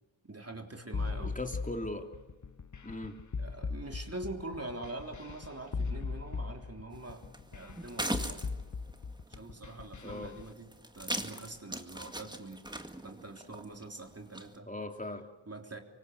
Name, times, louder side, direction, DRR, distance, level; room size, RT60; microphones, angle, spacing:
voice 1, 0.2-1.4 3.4-7.3 7.5-8.4 9.3-12.6 13.0-14.7 15.5-15.8, right 2 dB, 30° right, 3 dB, 3.5 m, -44 dB
sound 1, 0.9-10.5, left 4 dB, 35° left, 1.0 m, -39 dB
voice 2, 1.2-2.1 2.8-3.2 10.0-10.4 14.7-15.3, left 2 dB, 15° left, 5 dB, 3.1 m, -39 dB
sound 2, 6.9-14.6, right 1 dB, 10° right, 2.1 m, -41 dB
25.0 x 24.5 x 8.0 m, 1.2 s
cardioid pair, 65°, 48 cm